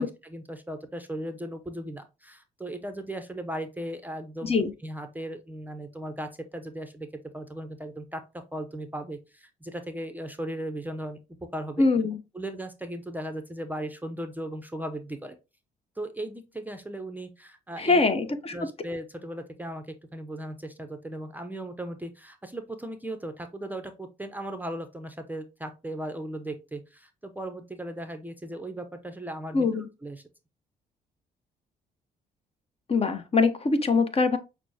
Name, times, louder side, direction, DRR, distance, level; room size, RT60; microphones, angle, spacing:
voice 1, 0.0-4.5 4.8-7.1 7.3-8.2 8.5-11.2 11.5-11.8 12.3-15.4 16.0-18.0 18.5-29.7 30.0-30.2, right 1 dB, 10° right, 0.6 m, -37 dB
voice 2, 11.8-12.2 17.8-18.5 29.5-29.9 32.9-34.4, left 3 dB, 30° left, 0.8 m, -23 dB
5.9 x 2.1 x 2.7 m
supercardioid pair, 55°, 18 cm